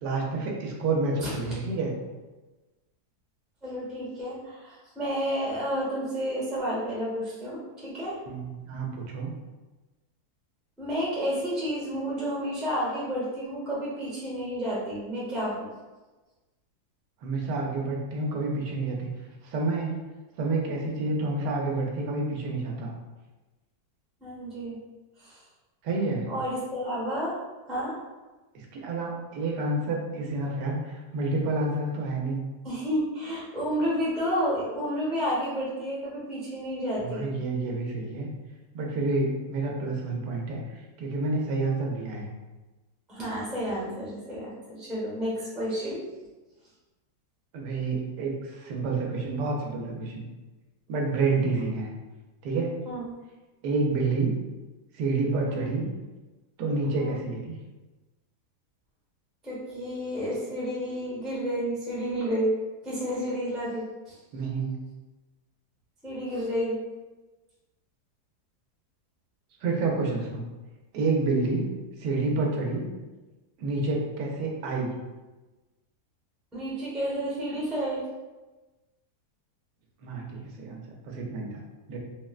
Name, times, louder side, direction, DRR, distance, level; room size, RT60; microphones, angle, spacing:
voice 1, 0.0-1.9 8.3-9.3 17.2-19.1 19.4-20.0 20.4-22.9 25.8-26.3 28.5-32.4 37.0-38.3 38.7-42.3 47.5-50.2 50.9-51.9 52.4-52.8 53.6-54.4 54.9-55.9 56.6-57.5 64.3-64.7 69.6-70.4 70.9-71.7 72.0-72.9 73.6-74.9 80.0-81.6 81.9-82.0, right 3 dB, 90° right, 0 dB, 1.2 m, -29 dB
voice 2, 3.6-8.2 10.8-15.7 24.2-24.8 25.2-25.4 26.3-27.3 27.7-28.0 32.6-37.3 43.1-46.1 52.8-53.0 55.5-55.7 57.0-57.2 59.4-62.5 62.8-64.1 66.0-66.8 76.5-78.0, equal, ahead, -7 dB, 0.5 m, -31 dB
3.6 x 2.1 x 2.3 m, 1.2 s
omnidirectional pair, 1.8 m